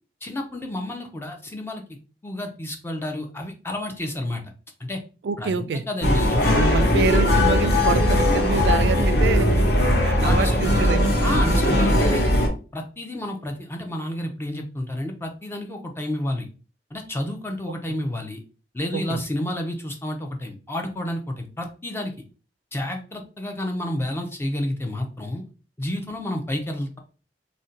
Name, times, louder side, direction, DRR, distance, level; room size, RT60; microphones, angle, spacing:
voice 1, 0.2-1.8 2.2-4.4 4.8-5.0 5.4-6.6 10.2-10.9 11.2-12.2 12.7-16.5 16.9-18.4 18.7-22.1 22.7-25.4 25.8-27.0, left 1 dB, 15° left, 3 dB, 0.4 m, -30 dB
voice 2, 5.2-5.8 6.5-11.1 17.7-17.8 18.9-19.2, right 5 dB, 65° right, 11 dB, 0.3 m, -27 dB
sound 1, 6.0-12.5, left 1 dB, 65° left, 0.8 m, -19 dB
2.5 x 2.1 x 3.8 m, 0.36 s
head